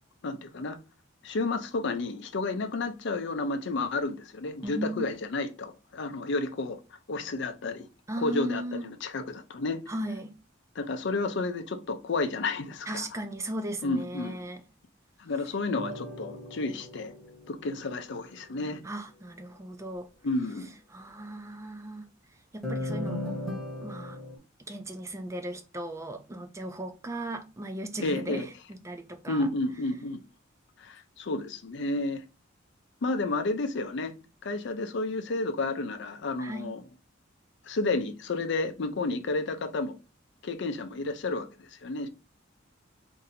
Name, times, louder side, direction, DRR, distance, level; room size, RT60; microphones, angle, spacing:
voice 1, 0.2-0.8 1.2-6.8 7.1-7.9 8.2-9.8 10.8-13.1 13.8-14.4 15.2-17.1 17.5-18.8 20.2-20.7 28.0-28.5 29.3-30.2 30.8-32.2 33.0-34.1 34.4-36.8 37.7-40.0 40.4-42.1, left 3 dB, 60° left, 0.5 m, -31 dB
voice 2, 4.6-5.1 8.1-8.9 9.9-10.3 12.9-14.6 18.8-20.1 20.9-22.1 22.5-23.3 23.8-24.2 24.6-29.5 36.4-36.7, right 1 dB, 15° right, 0.4 m, -37 dB
sound 1, 15.7-18.3 22.6-24.4, left 1 dB, ahead, 0.9 m, -37 dB
2.7 x 2.6 x 4.0 m
head